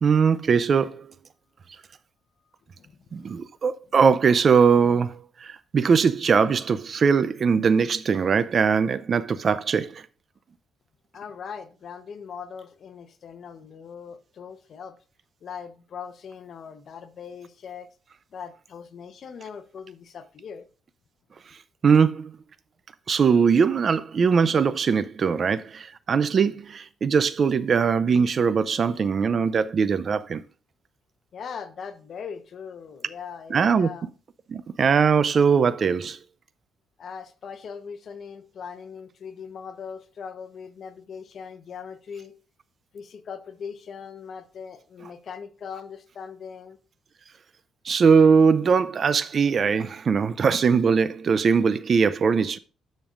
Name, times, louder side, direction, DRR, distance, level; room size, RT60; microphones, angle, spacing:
voice 1, 0.0-1.1 3.1-10.0 21.8-22.3 23.1-30.4 33.5-33.9 34.5-36.2 47.9-52.6, right 6 dB, 45° right, 0.5 m, -21 dB
voice 2, 2.7-3.5 11.1-15.0 15.4-17.9 18.3-20.7 31.3-34.1 37.0-42.3 42.9-46.8 50.2-50.3, left 6 dB, 55° left, 0.9 m, -40 dB
13.0 x 5.3 x 2.5 m
cardioid pair, 90°, 0 cm